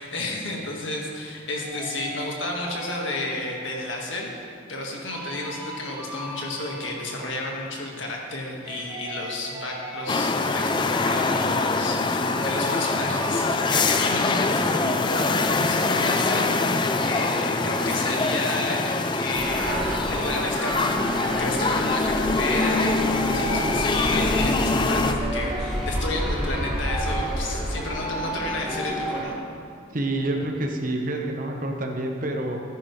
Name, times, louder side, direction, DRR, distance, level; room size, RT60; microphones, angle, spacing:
voice 1, 0.0-19.8 20.1-29.4, left 2 dB, 75° left, -1 dB, 1.7 m, -31 dB
sound 1, 1.6-8.4 8.6-15.5 15.7-20.3, equal, 15° right, 2.7 m, -40 dB
sound 2, 10.1-25.1, left 3 dB, 25° left, 0.4 m, -24 dB
sound 3, 19.3-29.2, equal, ahead, 3.0 m, -29 dB
voice 2, 29.9-32.6, right 1 dB, 45° right, 2 dB, 1.0 m, -27 dB
14.5 x 10.0 x 3.2 m, 2.3 s
head